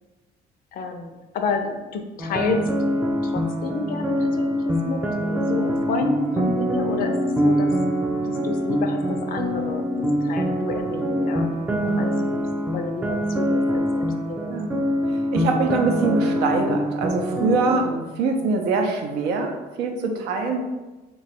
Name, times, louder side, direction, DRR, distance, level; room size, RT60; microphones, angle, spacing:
voice 1, 0.7-2.6 3.2-7.2 7.4-7.7 8.2-12.1 12.7-14.6 18.3-18.6, left 4 dB, 60° left, 5 dB, 0.5 m, -30 dB
sound 1, 2.2-17.8, equal, 10° right, 0.3 m, -24 dB
voice 2, 11.7-12.0 14.5-14.8 15.1-20.6, right 4 dB, 85° right, 3 dB, 0.5 m, -24 dB
2.9 x 2.3 x 4.2 m, 1.1 s
cardioid pair, 110°, 17 cm